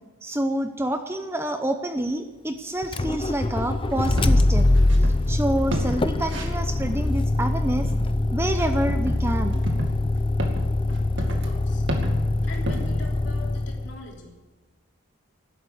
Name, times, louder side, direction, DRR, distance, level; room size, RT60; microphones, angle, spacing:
voice 1, 0.2-4.7 5.0-7.9 8.3-9.6, right 1 dB, 10° right, 7 dB, 0.7 m, -27 dB
Motor vehicle (road), 2.8-14.0, left 2 dB, 25° left, 0.5 m, -23 dB
sound 1, 3.9-5.2 5.5-6.6 8.5-9.2 9.5-13.1, right 1 dB, 60° right, 2.4 m, -32 dB
voice 2, 11.2-11.9 12.5-14.4, left 2 dB, 55° left, 0 dB, 3.5 m, -42 dB
12.5 x 12.5 x 8.6 m, 1.3 s
head